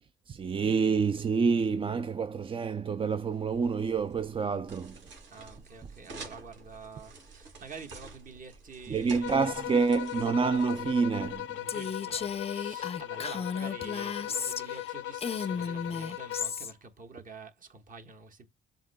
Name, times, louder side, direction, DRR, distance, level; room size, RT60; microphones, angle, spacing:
voice 1, 0.0-5.1 8.9-11.6, right 5 dB, 25° right, 0.4 m, -28 dB
sound 1, 3.3-11.4, right 3 dB, 70° right, 2.5 m, -50 dB
voice 2, 5.3-9.4 11.6-18.5, right 4 dB, 45° right, 1.5 m, -48 dB
sound 2, 9.2-16.7, left 14 dB, 75° left, 0.5 m, -38 dB
Female speech woman speaking, 11.7-14.9 15.2-16.7, left 6 dB, 30° left, 0.5 m, -34 dB
7.4 x 2.7 x 2.2 m
cardioid pair, 90°, 20 cm